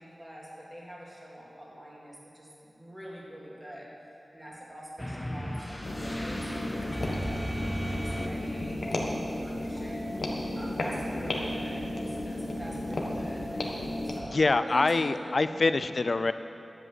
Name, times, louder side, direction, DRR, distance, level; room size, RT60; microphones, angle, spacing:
voice 1, 0.0-3.9 4.3-10.0 10.5-15.0 15.5-15.7, equal, 15° right, -5 dB, 2.7 m, -45 dB
sound 1, 5.0-8.8, equal, 10° left, 0.7 m, -36 dB
sound 2, 5.8-14.2, left 1 dB, 75° left, 1.4 m, -33 dB
sound 3, 8.6-14.5, right 3 dB, 65° right, 0.5 m, -49 dB
voice 2, 14.3-16.3, left 3 dB, 50° left, 12 dB, 0.4 m, -25 dB
11.0 x 7.9 x 7.5 m, 2.9 s
wide cardioid pair, 95°, 0 cm